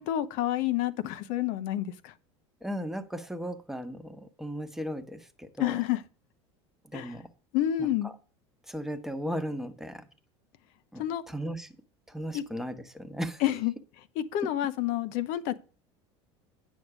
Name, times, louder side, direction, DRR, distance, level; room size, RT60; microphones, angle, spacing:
voice 1, 0.0-2.1 5.6-6.0 6.9-7.1 7.5-8.1 11.0-11.2 12.3-12.4 13.4-13.7 14.2-15.6, left 12 dB, 65° left, 0.8 m, -29 dB
voice 2, 2.6-5.8 6.9-7.3 7.8-8.1 8.7-10.1 10.9-11.7 12.1-13.4, equal, 5° right, 1.2 m, -36 dB
9.6 x 6.4 x 4.9 m
hypercardioid pair, 85°, 15 cm